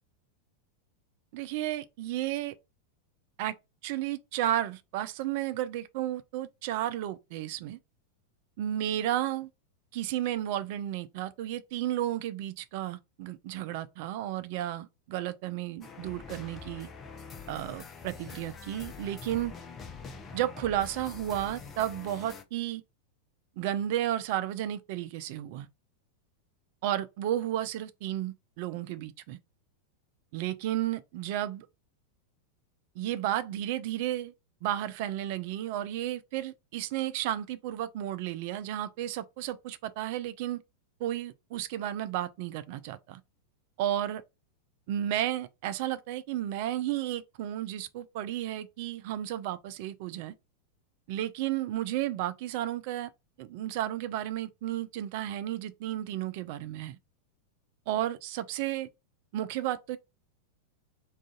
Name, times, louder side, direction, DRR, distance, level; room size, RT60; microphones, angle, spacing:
voice 1, 1.3-2.5 3.4-3.5 3.8-7.8 8.6-9.5 9.9-16.9 17.5-19.5 20.3-22.8 23.6-25.7 26.8-29.4 30.3-31.7 33.0-34.3 34.6-40.6 41.0-43.2 43.8-44.2 44.9-50.3 51.1-53.1 53.4-57.0 57.9-58.9 59.3-60.0, right 12 dB, 50° right, 0.3 m, -33 dB
sound 1, 15.8-22.4, left 5 dB, 25° left, 0.5 m, -45 dB
2.4 x 2.4 x 3.7 m
figure-of-eight pair, 90°, 0 cm